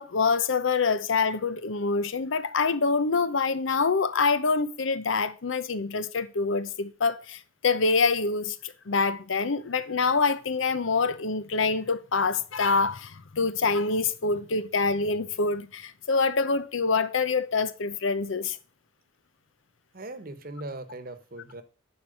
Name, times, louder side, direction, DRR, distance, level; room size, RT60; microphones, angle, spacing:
voice 1, 0.0-18.6, left 4 dB, 80° left, 0.8 m, -26 dB
voice 2, 19.9-21.6, right 2 dB, 45° right, 1.1 m, -39 dB
10.5 x 4.6 x 6.4 m
head